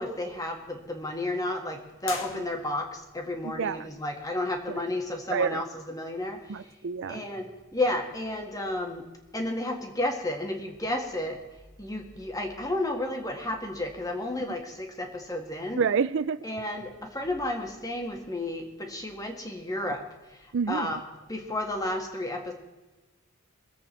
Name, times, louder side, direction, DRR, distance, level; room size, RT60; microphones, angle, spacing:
voice 1, 0.0-6.7 7.1-9.1 9.3-11.4 11.8-15.8 16.4-20.0 20.4-21.0 21.3-22.5, left 1 dB, 15° left, 3 dB, 1.8 m, -32 dB
sound 1, 2.0-3.1, left 4 dB, 60° left, 1.6 m, -39 dB
voice 2, 3.4-3.8 5.3-5.6 6.5-7.2 15.8-16.4 20.5-20.9, right 6 dB, 55° right, 14 dB, 0.4 m, -28 dB
23.0 x 8.2 x 4.5 m, 1.1 s
head